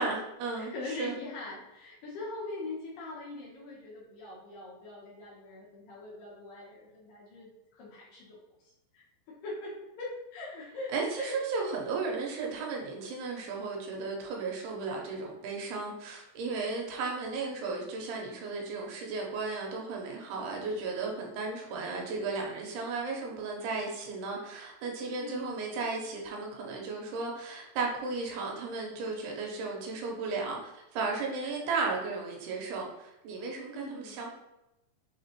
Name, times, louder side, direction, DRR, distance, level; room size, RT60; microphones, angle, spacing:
voice 1, 0.0-1.1 10.9-34.3, right 4 dB, 80° right, 0 dB, 2.7 m, -35 dB
voice 2, 0.5-8.4 8.6-11.4 25.2-25.8 33.7-34.3, left 2 dB, 70° left, -5 dB, 2.3 m, -42 dB
6.2 x 2.9 x 2.9 m, 0.91 s
omnidirectional pair, 4.7 m